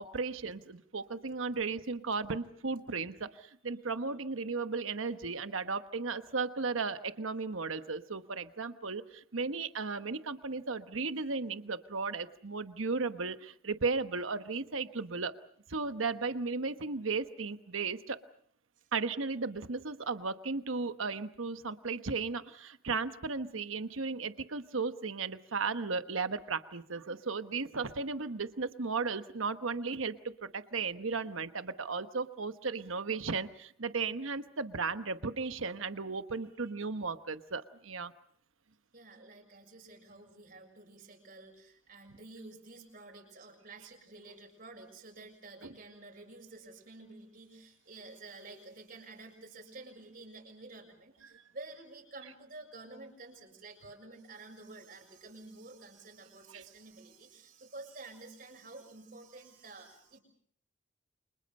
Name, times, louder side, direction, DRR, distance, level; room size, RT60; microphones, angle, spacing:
voice 1, 0.0-15.3 15.7-18.2 18.9-38.1 45.6-45.7 56.5-56.6, right 4 dB, 90° right, 10 dB, 1.2 m, -35 dB
voice 2, 38.9-60.2, right 2 dB, 45° right, 2 dB, 6.7 m, -50 dB
30.0 x 26.0 x 5.5 m, 0.63 s
head